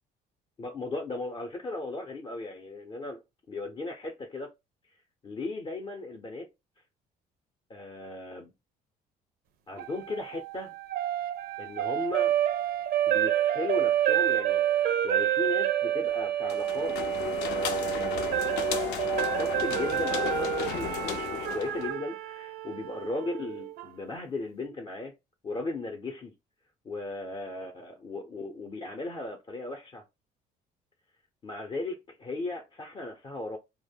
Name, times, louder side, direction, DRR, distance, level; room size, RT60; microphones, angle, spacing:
voice 1, 0.6-3.2 3.5-4.5 5.2-6.5 7.7-8.5 9.7-10.7 11.6-12.3 13.1-17.0 17.4-18.8 19.1-25.1 25.4-26.3 26.8-30.0 31.4-33.6, left 2 dB, 30° left, 0.5 m, -37 dB
sound 1, 9.8-23.9, right 11 dB, 65° right, 0.4 m, -29 dB
sound 2, 16.5-22.0, left 7 dB, 85° left, 0.5 m, -33 dB
2.1 x 2.1 x 3.4 m
cardioid pair, 110°, 17 cm